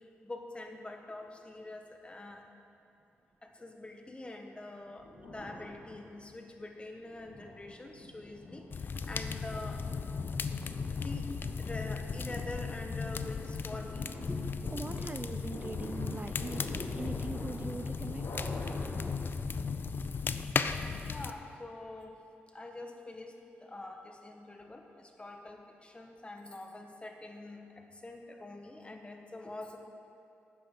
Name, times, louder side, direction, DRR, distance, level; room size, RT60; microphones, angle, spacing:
voice 1, 0.2-2.4 3.4-9.8 10.9-11.2 11.6-14.5 21.1-22.1 22.5-23.4 23.6-29.8, left 2 dB, 25° left, 3 dB, 1.4 m, -45 dB
sound 1, 5.0-6.4 6.9-19.0, left 1 dB, 85° left, 2.2 m, -47 dB
sound 2, 8.7-21.3, left 5 dB, 50° left, 0.5 m, -36 dB
voice 2, 14.7-18.3, right 3 dB, 30° right, 8 dB, 0.4 m, -42 dB
13.0 x 9.5 x 3.8 m, 2.8 s
cardioid pair, 60°, 5 cm